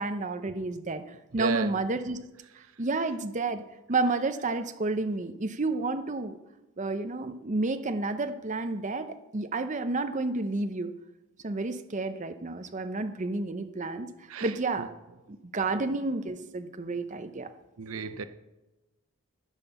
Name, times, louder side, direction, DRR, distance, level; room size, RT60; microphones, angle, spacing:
voice 1, 0.0-2.2 2.6-3.6 3.9-6.4 6.8-10.9 11.4-14.1 14.4-14.9 15.3-17.5, right 3 dB, 35° right, 8 dB, 0.7 m, -30 dB
voice 2, 1.3-1.7 14.3-14.9 15.7-15.9 17.8-18.2, right 6 dB, 70° right, 11 dB, 0.6 m, -34 dB
14.5 x 5.5 x 6.9 m, 1.0 s
head